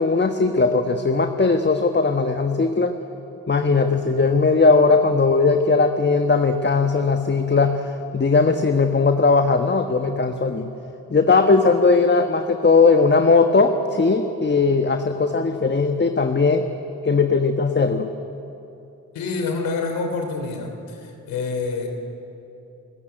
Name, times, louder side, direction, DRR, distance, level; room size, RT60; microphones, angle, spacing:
voice 1, 0.0-2.9 3.5-10.7 11.1-16.6 17.0-18.1, left 4 dB, 30° left, 6 dB, 1.4 m, -18 dB
voice 2, 19.1-21.9, left 4 dB, 85° left, 4 dB, 3.1 m, -27 dB
29.0 x 15.0 x 9.3 m, 2.9 s
supercardioid pair, 45°, 34 cm